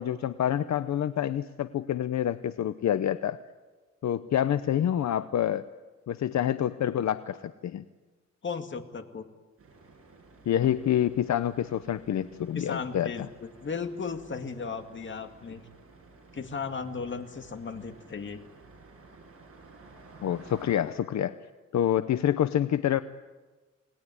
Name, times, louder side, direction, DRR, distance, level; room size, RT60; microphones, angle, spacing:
voice 1, 0.0-3.4 4.0-5.6 6.1-7.8 10.5-13.1 20.2-21.4 21.7-23.0, left 10 dB, 70° left, 12 dB, 0.8 m, -27 dB
voice 2, 8.4-9.3 12.6-13.3 13.6-15.6 16.3-18.4, left 5 dB, 40° left, 7 dB, 2.2 m, -35 dB
sound 1, 9.6-20.8, right 3 dB, 50° right, 7.7 m, -53 dB
28.0 x 20.0 x 9.9 m, 1.3 s
wide cardioid pair, 130°, 29 cm